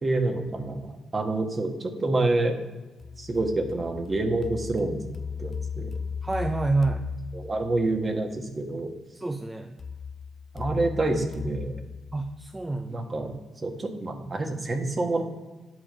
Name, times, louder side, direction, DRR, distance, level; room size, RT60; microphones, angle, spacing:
voice 1, 0.0-2.6 3.2-5.0 5.4-5.9 7.3-8.9 10.5-11.8 12.9-13.3 13.6-15.2, right 2 dB, 35° right, 4 dB, 1.5 m, -27 dB
sound 1, 3.0-8.0 9.8-12.8, left 6 dB, 45° left, 0.4 m, -37 dB
voice 2, 6.2-7.1 9.2-9.8 12.1-13.1, right 3 dB, 20° right, 5 dB, 0.6 m, -28 dB
9.8 x 5.1 x 5.1 m, 1.2 s
supercardioid pair, 55°, 0 cm